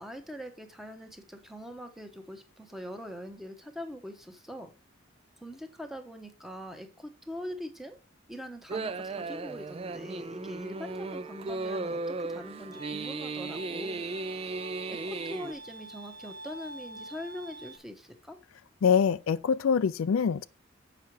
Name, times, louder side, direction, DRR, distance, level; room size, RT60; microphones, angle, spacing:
voice 1, 0.0-4.7 5.4-8.0 8.3-14.0 14.9-18.4, equal, ahead, 1.0 m, -42 dB
sound 1, 8.7-15.5, right 3 dB, 30° right, 0.4 m, -36 dB
Bowed string instrument, 12.7-17.8, right 1 dB, 50° right, 1.3 m, -46 dB
voice 2, 18.8-20.5, left 6 dB, 85° left, 0.4 m, -24 dB
7.5 x 5.6 x 4.7 m
head